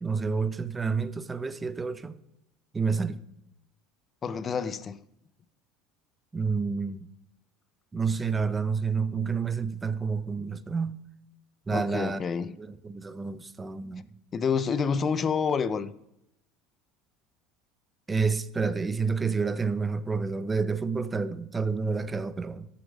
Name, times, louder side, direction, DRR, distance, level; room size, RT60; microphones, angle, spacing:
voice 1, 0.0-2.2 2.7-3.2 6.3-7.1 7.9-11.0 11.7-12.2 12.6-14.1 18.1-22.7, right 5 dB, 15° right, 0.6 m, -29 dB
voice 2, 4.2-5.0 11.7-12.6 14.3-15.9, left 6 dB, 25° left, 0.5 m, -28 dB
14.5 x 7.1 x 5.3 m
cardioid pair, 140°, 0 cm